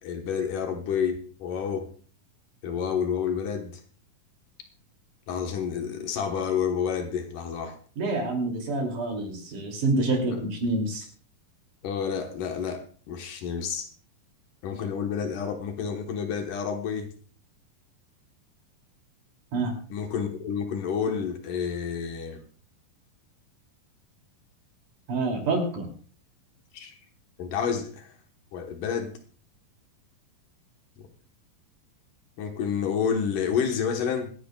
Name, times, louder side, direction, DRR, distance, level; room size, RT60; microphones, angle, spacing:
voice 1, 0.0-1.9 2.6-3.8 5.3-7.8 10.3-10.4 11.8-13.9 14.6-17.1 19.9-22.4 26.7-26.9 27.4-28.1 28.5-29.2 32.4-34.3, left 7 dB, 70° left, 5 dB, 2.7 m, -29 dB
voice 2, 8.0-11.1 19.5-19.7 25.1-25.9, right 2 dB, 60° right, 2 dB, 4.1 m, -27 dB
26.0 x 10.0 x 2.3 m, 0.43 s
omnidirectional pair, 4.1 m